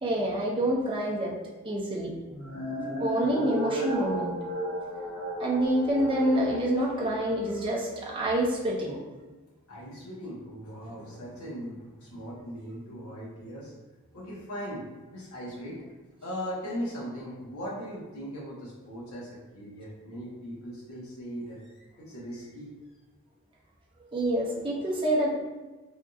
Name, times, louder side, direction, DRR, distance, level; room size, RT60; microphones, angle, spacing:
voice 1, 0.0-1.3 1.6-2.1 3.0-4.3 5.4-9.0 24.1-25.3, right 1 dB, 25° right, -4 dB, 0.5 m, -27 dB
sound 1, 2.3-6.7, right 1 dB, 15° left, 0.9 m, -34 dB
voice 2, 9.7-13.7 14.1-14.8 15.1-15.8 16.2-22.7, equal, 75° left, -5 dB, 1.1 m, -39 dB
3.5 x 2.7 x 2.3 m, 1.2 s
head